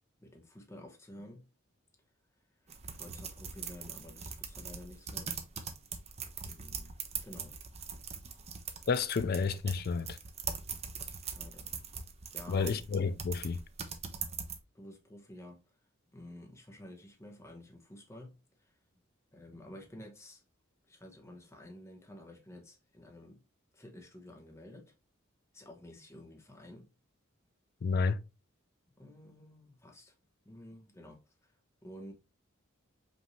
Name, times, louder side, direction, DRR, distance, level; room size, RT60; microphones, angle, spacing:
voice 1, 0.2-1.5 2.6-5.3 6.5-7.0 7.2-7.6 10.9-11.7 12.3-12.8 14.7-15.6 16.1-18.7 19.3-20.4 20.9-23.4 23.7-24.9 25.5-26.9 29.0-30.1 30.4-31.5 31.8-32.1, left 1 dB, 15° left, 0.9 m, -51 dB
sound 1, 2.7-14.6, right 6 dB, 30° right, 0.6 m, -42 dB
voice 2, 8.9-10.2 12.5-13.6 27.8-28.2, left 5 dB, 50° left, 0.4 m, -30 dB
5.2 x 2.7 x 3.1 m
head